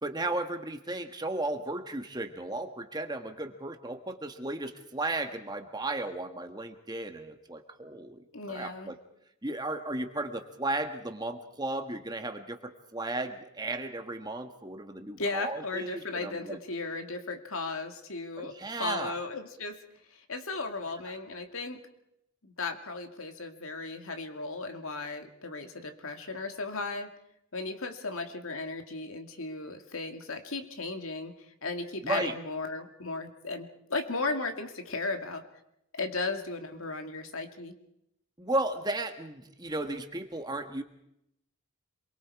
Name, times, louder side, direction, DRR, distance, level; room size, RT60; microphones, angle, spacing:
voice 1, 0.0-9.0 9.4-16.6 18.4-19.2 32.0-32.4 38.4-40.8, right 2 dB, 20° right, 6 dB, 1.6 m, -35 dB
voice 2, 8.3-8.9 15.2-18.5 18.8-19.8 20.1-21.8 22.4-27.1 27.5-31.3 31.6-35.5 35.9-37.7, left 3 dB, 65° left, 5 dB, 2.3 m, -36 dB
27.5 x 23.0 x 4.8 m, 0.78 s
head